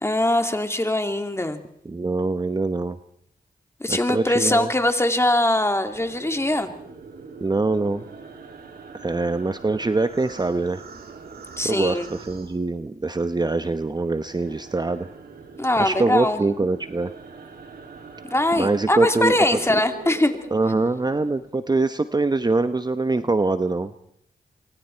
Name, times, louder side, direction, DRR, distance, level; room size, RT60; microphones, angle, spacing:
voice 1, 0.0-1.6 3.8-6.7 11.6-12.1 15.6-16.4 18.2-20.4, left 1 dB, 15° left, 7 dB, 2.5 m, -22 dB
voice 2, 1.8-3.0 3.9-4.7 7.4-8.0 9.0-10.8 11.6-15.1 15.8-17.1 18.6-19.3 19.7-19.8 20.5-23.9, right 3 dB, 25° right, 11 dB, 0.9 m, -23 dB
sound 1, 5.9-13.2 13.5-21.5, right 4 dB, 75° right, 2.9 m, -42 dB
26.5 x 24.0 x 4.5 m, 0.72 s
cardioid pair, 55°, 16 cm